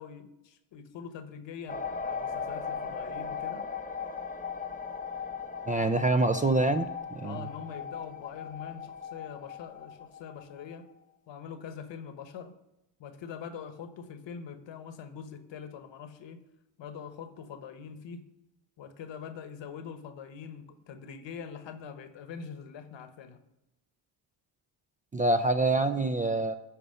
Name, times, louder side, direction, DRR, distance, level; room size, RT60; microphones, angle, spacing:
voice 1, 0.0-3.7 7.2-10.8 11.3-12.5 13.0-16.4 16.8-18.3 18.8-23.4, left 7 dB, 60° left, 9 dB, 1.2 m, -43 dB
sound 1, 1.7-10.8, left 6 dB, 15° left, 1.0 m, -38 dB
voice 2, 5.7-7.4 25.1-26.5, right 2 dB, 15° right, 8 dB, 0.4 m, -26 dB
11.0 x 4.3 x 5.6 m, 0.92 s
supercardioid pair, 75°, 50 cm